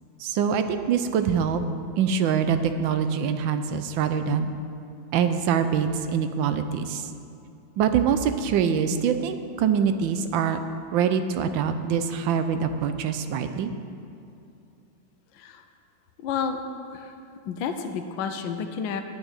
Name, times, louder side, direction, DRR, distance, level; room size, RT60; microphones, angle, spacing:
voice 1, 0.2-1.6 2.0-4.5 5.1-7.1 7.8-10.6 10.9-13.7, right 7 dB, 80° right, 9 dB, 1.4 m, -24 dB
voice 2, 16.2-16.6 16.9-17.1 17.5-19.0, left 6 dB, 80° left, 6 dB, 1.4 m, -30 dB
9.1 x 8.9 x 6.5 m, 2.6 s
omnidirectional pair, 2.1 m